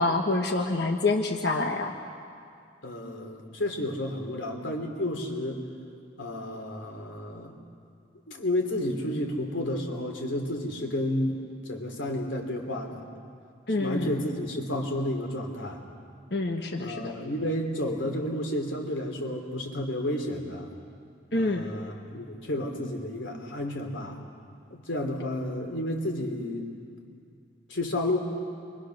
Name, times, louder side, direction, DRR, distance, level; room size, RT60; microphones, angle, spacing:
voice 1, 0.0-1.9 13.7-14.2 16.3-17.1 21.3-21.7, left 2 dB, 60° left, 3 dB, 1.3 m, -27 dB
voice 2, 2.8-5.6 6.2-7.5 8.3-11.4 11.7-13.0 13.7-15.8 16.8-20.7 21.3-24.2 24.7-26.7 27.7-28.2, left 1 dB, 80° left, 2 dB, 3.3 m, -31 dB
29.0 x 24.0 x 6.5 m, 2.3 s
head